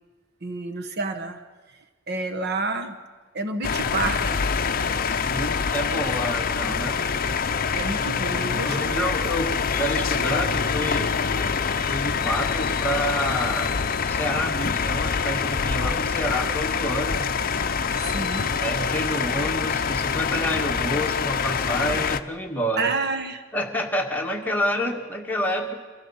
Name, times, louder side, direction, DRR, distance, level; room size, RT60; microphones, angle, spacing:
voice 1, 0.4-1.4 2.1-3.0 3.3-4.4 7.7-9.1 18.0-18.5 22.8-23.4, right 3 dB, 50° right, 7 dB, 1.1 m, -29 dB
sound 1, 3.6-22.2, left 5 dB, 40° left, 0.7 m, -25 dB
voice 2, 5.2-7.0 8.6-11.1 11.7-17.3 18.6-22.9 23.5-25.7, equal, 10° left, 1 dB, 1.8 m, -28 dB
25.5 x 15.0 x 7.2 m, 1.4 s
head